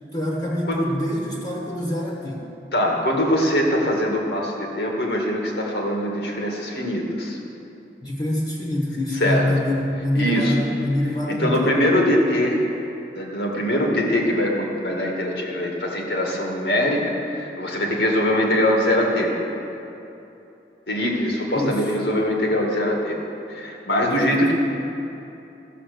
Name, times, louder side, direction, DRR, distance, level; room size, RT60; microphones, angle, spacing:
voice 1, 0.1-2.5 8.0-11.7 21.5-21.8 24.2-24.5, left 1 dB, 25° left, -3 dB, 1.3 m, -25 dB
voice 2, 2.7-7.4 9.1-9.5 10.2-10.6 11.3-12.7 13.1-19.3 20.9-23.2 23.5-24.5, equal, 70° left, -1 dB, 2.0 m, -22 dB
14.0 x 7.2 x 6.8 m, 2.9 s
head